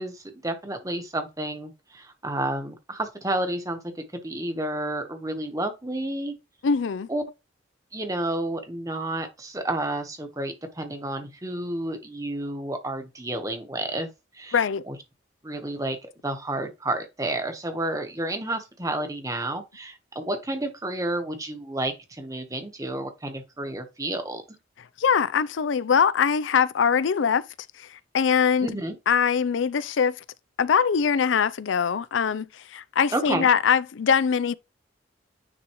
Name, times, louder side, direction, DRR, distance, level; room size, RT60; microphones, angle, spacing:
voice 1, 0.0-6.3 7.1-7.2 7.9-14.1 14.3-14.6 14.9-15.0 15.4-24.4 28.6-29.0 33.1-33.5, right 1 dB, 15° right, 1.1 m, -30 dB
voice 2, 6.6-7.1 14.5-14.8 25.0-27.4 27.8-28.7 29.1-30.2 30.6-34.5, left 6 dB, 85° left, 0.4 m, -22 dB
9.9 x 3.6 x 3.1 m
head